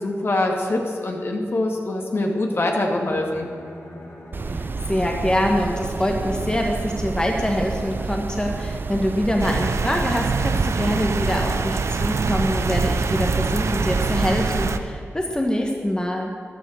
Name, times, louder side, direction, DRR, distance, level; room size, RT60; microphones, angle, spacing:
voice 1, 0.0-3.5, left 2 dB, 55° left, 1 dB, 2.2 m, -24 dB
Bowed string instrument, 2.8-7.8, left 1 dB, 70° left, 4.2 m, -41 dB
sound 1, 4.3-14.3, right 4 dB, 45° right, 0.4 m, -30 dB
voice 2, 4.5-16.3, left 1 dB, 15° left, 1 dB, 1.6 m, -24 dB
sound 2, 9.4-14.8, right 4 dB, 70° right, 0.7 m, -24 dB
14.0 x 11.0 x 6.6 m, 2.2 s
cardioid pair, 65°, 5 cm